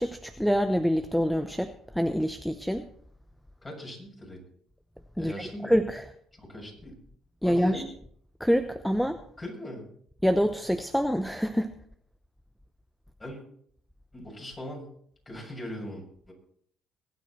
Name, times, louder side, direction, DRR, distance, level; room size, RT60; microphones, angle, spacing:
voice 1, 0.0-2.9 5.2-6.0 7.4-7.8 8.4-9.2 10.2-11.7, equal, ahead, 9 dB, 0.9 m, -26 dB
voice 2, 3.6-4.4 5.2-5.7 6.4-6.9 7.4-7.8 9.4-9.8 13.2-13.4 14.1-14.9 15.3-16.3, left 1 dB, 25° left, 0 dB, 7.2 m, -39 dB
22.5 x 9.2 x 4.4 m, 0.64 s
supercardioid pair, 75°, 0 cm